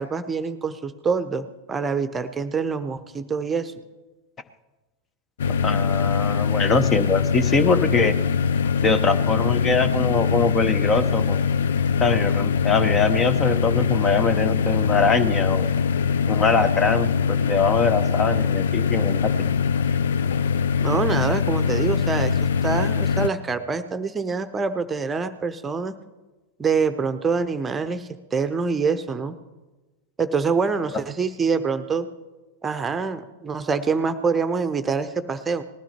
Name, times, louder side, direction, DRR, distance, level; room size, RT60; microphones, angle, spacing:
voice 1, 0.0-3.7 20.8-25.9 26.6-29.3 30.2-32.1 32.6-35.6, right 5 dB, 15° right, 10 dB, 0.9 m, -25 dB
sound 1, 5.4-23.3, left 6 dB, 60° left, 0.5 m, -22 dB
voice 2, 5.6-8.1 8.8-11.4 12.0-15.7 16.3-19.3, left 4 dB, 25° left, 12 dB, 0.9 m, -22 dB
19.5 x 13.0 x 4.4 m, 1.1 s
figure-of-eight pair, 90°, 0 cm